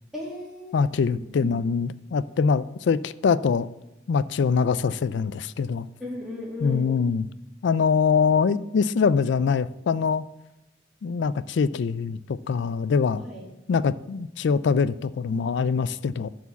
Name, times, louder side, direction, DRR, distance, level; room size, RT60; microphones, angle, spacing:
voice 1, 0.1-0.8 1.1-1.6 6.0-6.8 13.2-13.5, left 1 dB, ahead, 2.1 m, -36 dB
voice 2, 0.7-3.7 4.1-5.9 6.6-7.3 7.6-10.3 11.0-13.2 13.7-16.3, left 5 dB, 65° left, 0.3 m, -23 dB
12.5 x 4.7 x 7.0 m
head